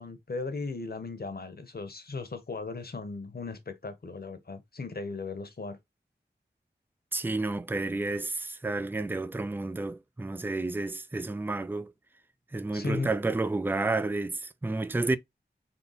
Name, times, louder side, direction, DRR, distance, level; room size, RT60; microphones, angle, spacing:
voice 1, 0.0-5.8 12.7-13.1, left 3 dB, 55° left, 1.0 m, -37 dB
voice 2, 7.1-11.9 12.5-15.2, right 2 dB, 10° right, 0.4 m, -30 dB
3.8 x 2.2 x 3.9 m
wide cardioid pair, 70°, 19 cm